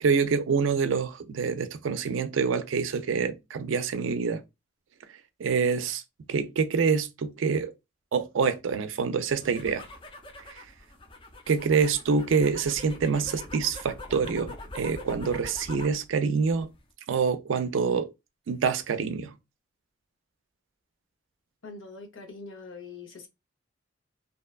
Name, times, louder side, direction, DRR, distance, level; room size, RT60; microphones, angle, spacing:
voice 1, 0.0-4.4 5.4-6.0 6.3-7.7 8.1-9.8 10.5-10.6 11.5-16.7 17.1-18.1 18.5-19.3, right 5 dB, 80° right, 0.4 m, -26 dB
sound 1, 9.3-16.0 16.4-16.9, left 2 dB, 25° left, 0.5 m, -44 dB
voice 2, 21.6-23.3, left 4 dB, 85° left, 0.7 m, -43 dB
2.7 x 2.2 x 2.3 m
head